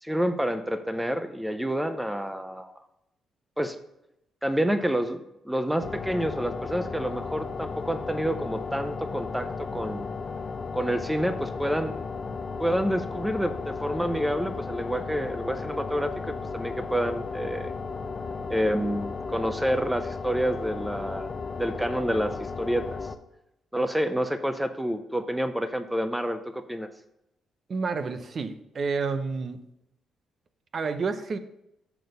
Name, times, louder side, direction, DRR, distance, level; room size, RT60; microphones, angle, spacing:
voice 1, 0.0-2.7 3.6-3.8 4.4-10.1 10.7-12.0 12.6-17.7 18.5-21.3 21.6-23.0 23.7-26.9, equal, 5° right, 9 dB, 0.6 m, -28 dB
sound 1, 5.8-23.2, left 4 dB, 35° left, 0.6 m, -35 dB
voice 2, 27.7-29.6 30.7-31.4, right 4 dB, 45° right, 10 dB, 0.7 m, -29 dB
6.9 x 6.0 x 6.7 m, 0.84 s
cardioid pair, 90°, 0 cm